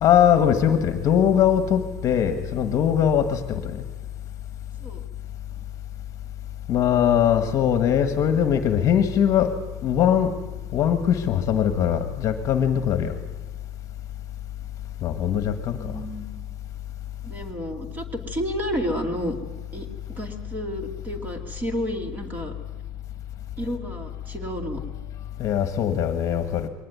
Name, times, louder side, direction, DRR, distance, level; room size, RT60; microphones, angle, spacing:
voice 1, 0.0-3.8 6.7-9.5 9.8-10.3 10.7-13.2 15.0-16.0 25.4-26.7, left 9 dB, 35° left, 9 dB, 1.4 m, -21 dB
voice 2, 15.7-16.3 17.2-19.4 19.7-22.5 23.6-24.8, equal, 20° right, 5 dB, 2.6 m, -31 dB
22.0 x 18.5 x 9.4 m, 1.2 s
cardioid pair, 170°, 9 cm